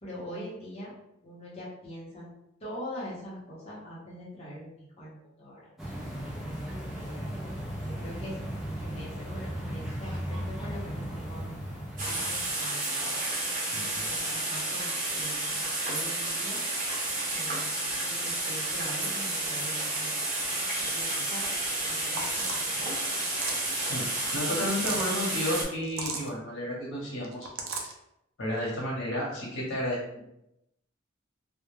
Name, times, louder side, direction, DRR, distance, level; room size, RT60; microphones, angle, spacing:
voice 1, 0.0-0.9 1.2-2.3 2.6-5.7 6.9-7.4 7.8-8.3 8.6-11.5 12.0-13.2 13.7-16.6 17.3-17.7 18.0-21.4 21.9-22.9 24.8-25.1, equal, 30° left, -7 dB, 0.7 m, -43 dB
sound 1, 5.8-12.6, equal, ahead, 0.5 m, -36 dB
sound 2, 12.0-25.6, right 2 dB, 40° right, 0.8 m, -31 dB
voice 2, 13.7-14.1 23.7-24.0 24.3-27.9 28.4-30.2, equal, 85° left, -5 dB, 0.8 m, -32 dB
sound 3, 22.2-22.7 23.2-23.8 24.6-25.1 25.8-26.3 27.2-27.9, right 4 dB, 70° right, 0.4 m, -36 dB
2.2 x 2.1 x 3.0 m, 0.83 s
head